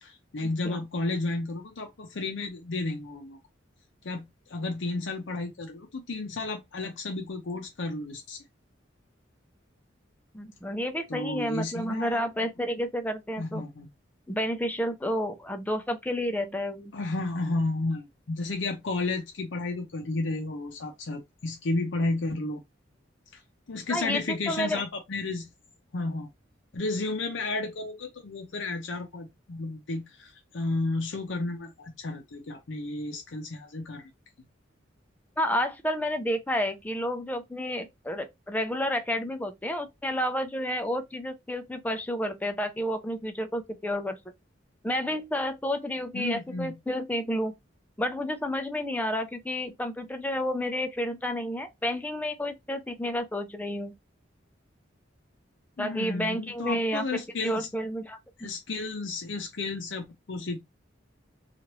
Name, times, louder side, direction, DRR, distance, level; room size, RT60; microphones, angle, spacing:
voice 1, 0.0-3.4 4.0-4.2 4.5-8.4 11.1-12.2 13.4-13.9 16.9-22.6 23.3-23.4 23.7-25.5 25.9-26.3 26.7-34.0 46.1-46.7 55.8-57.7 58.4-60.6, left 2 dB, 75° left, 0.6 m, -32 dB
voice 2, 10.3-13.6 14.3-16.9 23.9-24.8 35.4-44.2 44.8-47.5 48.0-53.9 55.8-57.0 57.4-58.2, equal, 10° left, 0.4 m, -30 dB
3.0 x 2.4 x 2.9 m
head